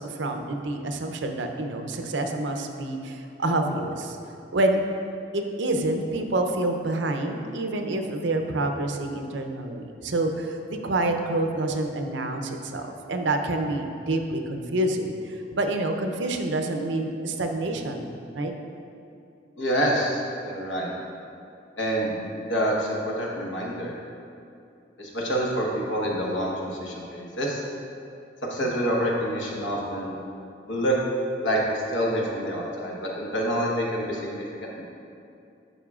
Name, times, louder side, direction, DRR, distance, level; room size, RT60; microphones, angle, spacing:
voice 1, 0.0-4.2 4.5-4.8 5.3-18.5, right 2 dB, 75° right, 5 dB, 0.6 m, -27 dB
voice 2, 19.6-20.2 20.5-20.9 21.8-23.9 25.0-27.6 28.4-30.2 30.7-30.9 31.4-34.8, equal, 85° left, -2 dB, 1.3 m, -27 dB
12.0 x 5.5 x 2.4 m, 2.6 s
head